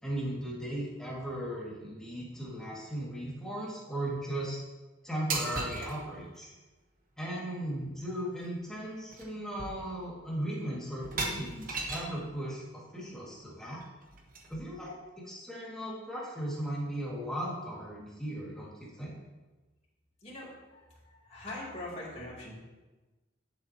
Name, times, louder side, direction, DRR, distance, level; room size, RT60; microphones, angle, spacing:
voice 1, 0.0-4.6 5.0-6.5 7.2-13.8 14.5-19.1, right 1 dB, 5° left, -7 dB, 2.3 m, -37 dB
sound 1, 5.3-6.0 8.0-8.1 8.4-8.7 9.1-9.3 9.6-10.2 11.0-12.2 13.8-14.8, right 3 dB, 45° right, 1.2 m, -37 dB
voice 2, 20.2-22.5, left 1 dB, 35° left, -7 dB, 3.1 m, -43 dB
12.0 x 7.6 x 3.0 m, 1.2 s
head